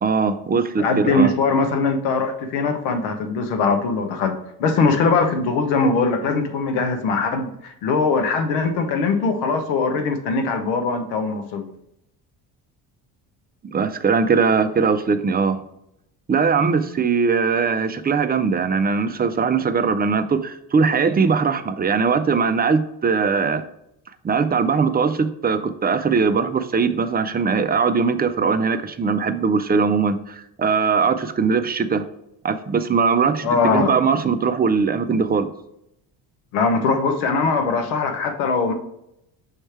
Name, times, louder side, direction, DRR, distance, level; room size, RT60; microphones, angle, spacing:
voice 1, 0.0-1.3 13.7-15.6 16.3-23.6 24.2-32.0 32.4-35.5, right 5 dB, 20° right, 9 dB, 0.5 m, -20 dB
voice 2, 0.8-11.7 33.4-33.9 36.5-38.7, left 4 dB, 80° left, 6 dB, 1.1 m, -21 dB
6.6 x 3.3 x 4.4 m, 0.79 s
supercardioid pair, 70°, 49 cm